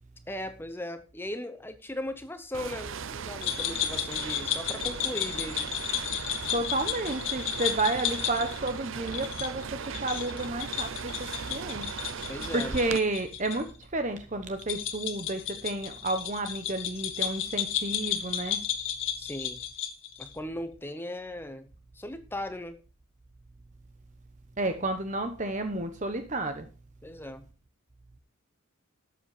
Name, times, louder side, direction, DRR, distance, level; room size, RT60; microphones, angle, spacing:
voice 1, 0.3-5.7 12.3-12.8 19.2-19.6 20.2-21.7 21.9-22.8 27.0-27.5, left 1 dB, 10° left, 10 dB, 0.8 m, -38 dB
sound 1, 2.5-13.0, right 6 dB, 65° right, 0.6 m, -38 dB
sound 2, 3.4-13.6 13.8-13.9 14.6-20.3, left 10 dB, 60° left, 1.4 m, -33 dB
voice 2, 6.5-11.9 12.2-18.6 24.6-26.7, right 2 dB, 35° right, 8 dB, 1.0 m, -31 dB
12.5 x 8.1 x 4.9 m, 0.35 s
head